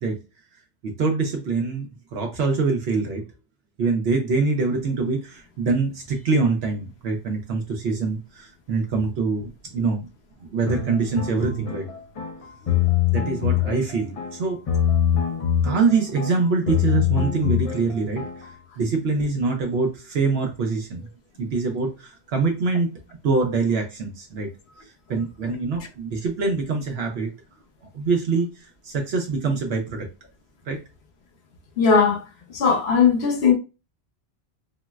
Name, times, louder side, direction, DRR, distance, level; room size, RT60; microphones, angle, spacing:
voice 1, 0.8-3.2 3.8-10.1 10.4-11.9 13.1-14.6 15.6-21.1 21.4-22.9 23.2-24.5 24.8-27.3 27.9-30.1 30.7-30.8, right 4 dB, 75° right, 0.8 m, -24 dB
sound 1, 10.7-18.6, left 10 dB, 45° left, 0.5 m, -24 dB
voice 2, 31.8-32.2 32.5-33.5, left 6 dB, 75° left, 1.0 m, -18 dB
3.8 x 2.0 x 2.3 m
omnidirectional pair, 1.1 m